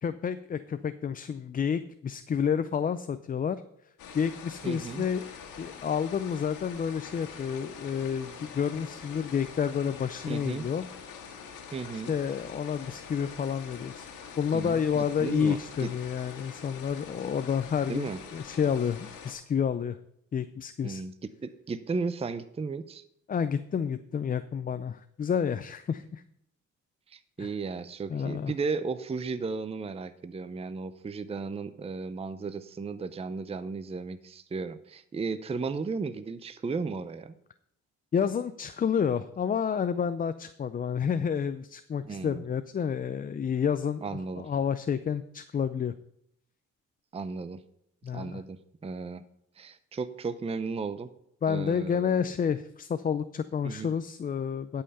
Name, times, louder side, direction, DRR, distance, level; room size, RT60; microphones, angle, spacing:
voice 1, 0.0-3.6 4.1-5.3 5.6-10.9 12.1-14.1 14.4-20.0 20.3-21.0 23.3-26.2 27.4-27.5 28.1-28.5 38.1-44.0 44.4-45.9 48.0-48.4 51.4-54.8, left 7 dB, 30° left, 11 dB, 0.4 m, -29 dB
sound 1, 4.0-19.3, left 6 dB, 85° left, 1.7 m, -45 dB
voice 2, 4.6-5.1 10.3-10.7 11.7-12.1 14.5-15.9 17.9-18.2 20.8-21.1 21.4-23.0 27.1-37.3 42.0-42.4 44.0-44.5 47.1-47.6 48.1-49.2 49.6-51.1 51.5-52.3 53.6-53.9, right 4 dB, 20° right, 12 dB, 0.6 m, -35 dB
11.5 x 5.7 x 5.4 m, 0.74 s
cardioid pair, 90°, 30 cm